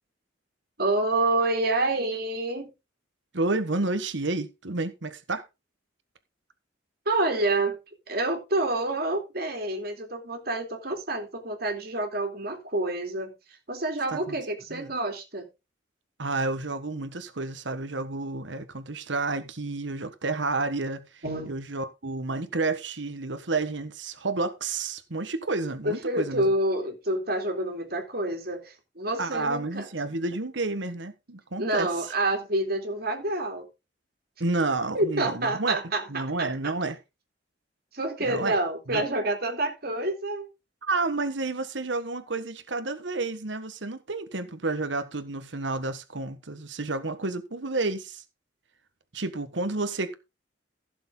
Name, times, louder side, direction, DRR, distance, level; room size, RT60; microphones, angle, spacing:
voice 1, 0.8-2.7 7.1-7.8 8.1-13.3 13.7-15.5 21.2-21.6 25.8-29.9 31.6-33.6 34.9-36.5 37.9-40.5, right 2 dB, 55° right, 2.9 m, -28 dB
voice 2, 3.3-5.4 14.1-14.4 14.7-14.9 16.2-26.4 29.2-31.9 34.4-35.8 36.1-37.0 38.2-38.5 38.9-39.0 40.8-48.2 49.1-50.1, right 3 dB, 75° right, 1.4 m, -30 dB
16.0 x 6.9 x 3.8 m
head